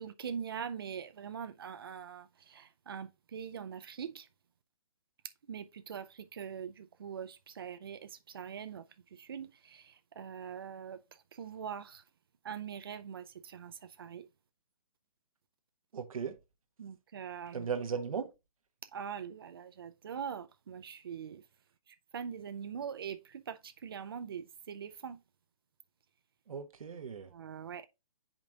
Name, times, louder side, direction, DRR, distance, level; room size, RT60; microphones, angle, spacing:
voice 1, 0.0-4.3 5.5-11.0 11.3-12.0 12.4-14.3 16.8-17.7 18.9-21.4 22.1-25.2 27.3-27.9, right 7 dB, 40° right, 0.5 m, -43 dB
voice 2, 15.9-16.4 17.5-18.3 26.5-27.3, right 6 dB, 75° right, 1.0 m, -37 dB
7.2 x 5.1 x 2.5 m
hypercardioid pair, 175°, 18 cm